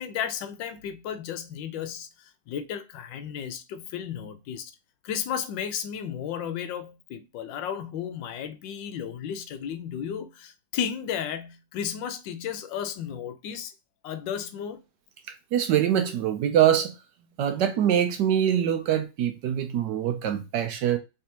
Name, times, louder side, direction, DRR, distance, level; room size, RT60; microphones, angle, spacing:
voice 1, 0.0-4.7 5.0-13.7 14.0-14.8, left 8 dB, 75° left, 1.2 m, -34 dB
voice 2, 15.5-16.9 17.4-21.0, right 10 dB, 70° right, 1.1 m, -24 dB
3.4 x 3.3 x 2.8 m
omnidirectional pair, 2.1 m